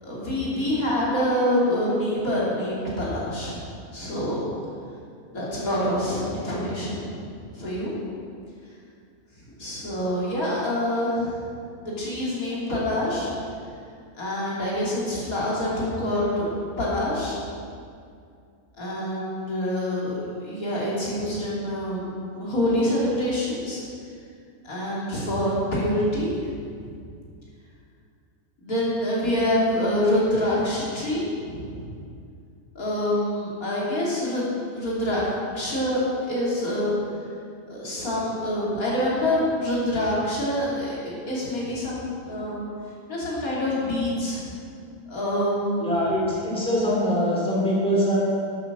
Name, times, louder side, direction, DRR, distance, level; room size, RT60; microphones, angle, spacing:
voice 1, 0.0-3.6 3.9-4.4 5.3-7.3 7.5-7.9 9.6-11.4 11.8-13.3 14.2-17.4 18.8-23.8 24.6-26.6 28.6-31.9 32.8-35.3 35.5-37.0 37.7-42.6 43.1-44.4 45.1-45.9, left 1 dB, 65° left, -7 dB, 3.4 m, -26 dB
voice 2, 45.8-48.2, equal, 5° left, -5 dB, 3.0 m, -23 dB
12.0 x 8.7 x 6.2 m, 2.3 s
omnidirectional pair, 1.6 m